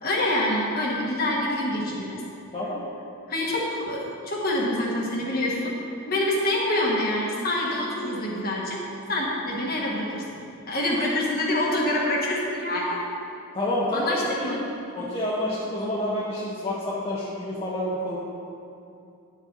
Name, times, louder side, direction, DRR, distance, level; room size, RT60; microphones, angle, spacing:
voice 1, 0.0-2.2 3.3-5.8 6.1-8.8 9.1-10.2 10.7-13.0 13.9-14.6, left 1 dB, 40° left, -3 dB, 1.6 m, -26 dB
voice 2, 2.5-2.9 13.5-14.5 14.9-18.2, left 1 dB, 25° left, -8 dB, 1.1 m, -28 dB
11.0 x 7.5 x 4.1 m, 2.6 s
head